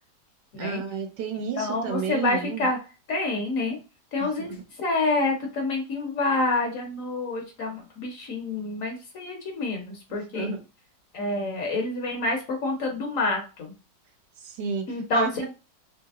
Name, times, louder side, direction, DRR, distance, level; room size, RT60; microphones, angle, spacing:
voice 1, 0.6-2.7 4.2-4.5 10.3-10.6 14.4-14.9 15.1-15.5, right 7 dB, 85° right, 6 dB, 1.3 m, -31 dB
voice 2, 1.5-2.8 3.1-3.8 4.1-10.5 11.1-13.7 14.9-15.5, left 2 dB, 60° left, 2 dB, 1.0 m, -28 dB
3.3 x 2.8 x 2.3 m, 0.31 s
omnidirectional pair, 1.8 m